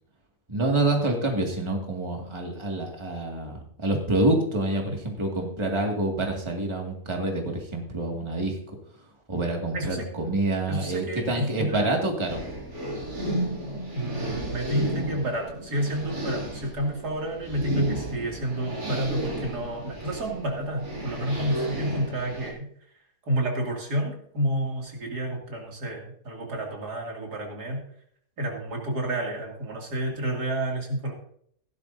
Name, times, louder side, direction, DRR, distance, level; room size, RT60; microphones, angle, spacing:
voice 1, 0.5-8.6 9.3-12.7, right 2 dB, 20° right, 1 dB, 2.0 m, -27 dB
voice 2, 9.7-10.1 10.7-12.3 13.9-22.7 23.3-27.8 28.4-31.1, right 1 dB, 85° right, 0 dB, 3.1 m, -30 dB
sound 1, 12.3-22.5, right 1 dB, 70° right, 3.2 m, -33 dB
16.0 x 11.5 x 2.7 m, 0.64 s
omnidirectional pair, 1.7 m